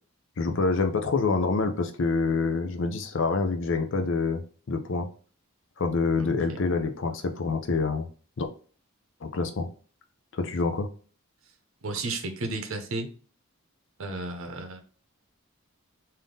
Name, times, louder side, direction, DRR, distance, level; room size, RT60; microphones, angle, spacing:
voice 1, 0.4-4.4 4.7-5.1 5.8-8.1 8.4-8.5 9.2-9.7 10.3-10.9, left 4 dB, 55° left, 6 dB, 0.5 m, -26 dB
voice 2, 6.2-6.6 11.8-13.1 14.0-14.8, right 2 dB, 65° right, 5 dB, 0.8 m, -33 dB
3.5 x 2.7 x 3.7 m, 0.40 s
head